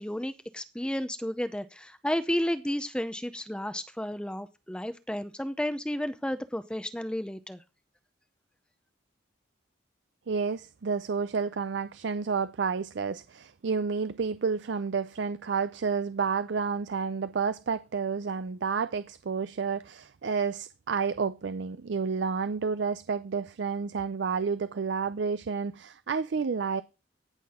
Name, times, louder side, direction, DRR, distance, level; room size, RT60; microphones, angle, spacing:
voice 1, 0.0-7.6, left 1 dB, 5° left, 0.6 m, -32 dB
voice 2, 10.3-26.8, right 5 dB, 70° right, 0.5 m, -30 dB
18.0 x 6.0 x 3.6 m
head